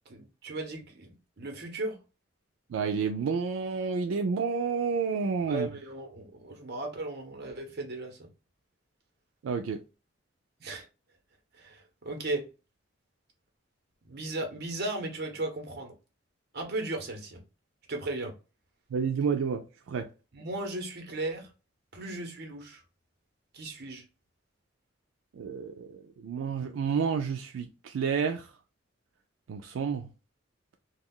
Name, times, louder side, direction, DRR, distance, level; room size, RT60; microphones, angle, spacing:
voice 1, 0.1-2.0 5.5-8.3 10.6-10.9 11.6-12.4 14.0-15.9 16.5-17.4 17.9-18.3 20.3-21.5 21.9-22.8 23.5-24.0, right 2 dB, 55° right, 0.9 m, -36 dB
voice 2, 2.7-5.7 9.4-9.8 18.9-20.1 25.4-28.5 29.5-30.1, right 6 dB, 85° right, 0.3 m, -30 dB
2.3 x 2.3 x 3.5 m
head